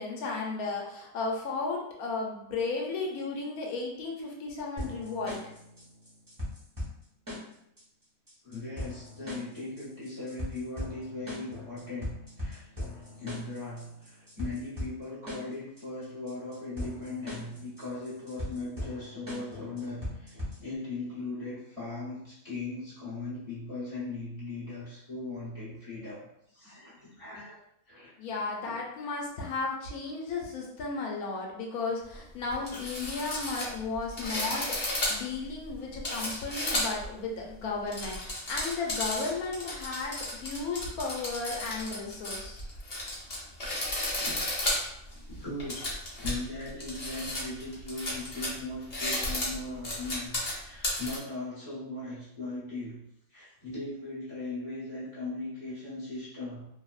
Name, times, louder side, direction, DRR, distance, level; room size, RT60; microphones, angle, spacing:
voice 1, 0.0-5.4 28.2-42.6, left 3 dB, 75° left, -1 dB, 1.1 m, -34 dB
sound 1, 4.8-20.8, left 1 dB, 15° right, 0.7 m, -40 dB
voice 2, 8.4-12.7 13.2-27.5 27.9-28.1 28.6-28.8 43.4-43.5 44.1-44.4 45.3-45.9 46.2-53.0 53.3-56.7, left 2 dB, 25° left, -10 dB, 1.0 m, -39 dB
sound 2, 32.1-32.2 32.5-37.1 37.7-51.2, left 1 dB, 45° left, 0.5 m, -33 dB
3.0 x 2.0 x 2.3 m, 0.76 s
omnidirectional pair, 1.6 m